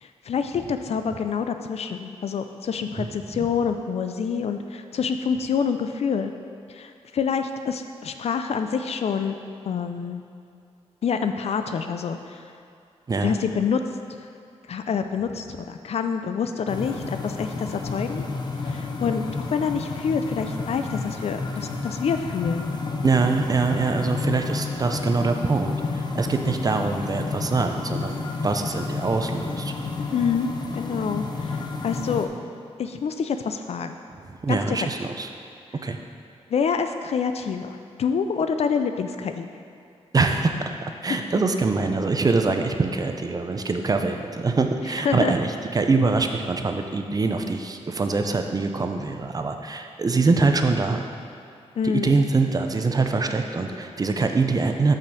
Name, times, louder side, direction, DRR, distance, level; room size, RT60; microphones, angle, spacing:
voice 1, 0.0-6.3 6.7-9.4 9.7-10.2 11.0-12.4 13.2-13.8 14.7-18.3 18.6-22.8 30.1-32.3 32.8-34.0 34.5-34.9 36.5-39.5 45.0-45.3 51.8-52.2, left 6 dB, 65° left, 7 dB, 0.4 m, -27 dB
sound 1, 16.7-32.3, left 3 dB, 40° left, 0.7 m, -31 dB
voice 2, 23.0-28.2 28.4-29.7 34.3-35.3 35.8-36.0 40.1-40.7 41.0-51.0 51.9-55.0, right 3 dB, 35° right, 5 dB, 0.5 m, -24 dB
5.5 x 5.2 x 6.1 m, 2.4 s
wide cardioid pair, 95°, 11 cm